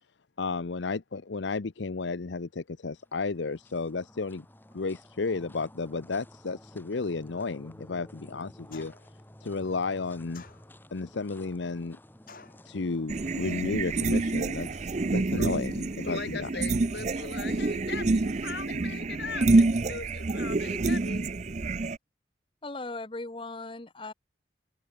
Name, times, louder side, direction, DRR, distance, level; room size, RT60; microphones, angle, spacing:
voice 1, 0.4-4.5 4.7-8.9 9.4-10.4 10.9-12.0 12.6-16.5 17.2-17.3, left 4 dB, 80° left, 0.7 m, -33 dB
sound 1, 2.9-16.2, left 1 dB, 10° left, 1.9 m, -54 dB
sound 2, 8.7-9.2 10.3-11.0 12.3-12.7, left 4 dB, 50° left, 2.1 m, -50 dB
sound 3, 13.1-22.0, right 3 dB, 40° right, 0.5 m, -27 dB
voice 2, 15.4-15.7 16.0-21.3, left 4 dB, 65° left, 1.8 m, -39 dB
voice 3, 22.6-24.1, left 2 dB, 30° left, 1.0 m, -38 dB
head